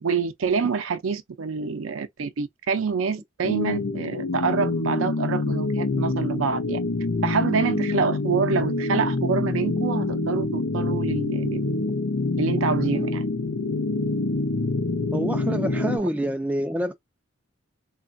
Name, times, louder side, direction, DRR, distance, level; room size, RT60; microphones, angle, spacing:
voice 1, 0.0-6.8 7.2-11.6 12.4-13.3 16.0-16.1, right 5 dB, 80° right, 0.5 m, -26 dB
sound 1, 3.4-16.0, left 2 dB, 90° left, 0.6 m, -26 dB
voice 2, 15.1-16.9, equal, 5° right, 0.3 m, -26 dB
3.1 x 2.3 x 2.5 m
head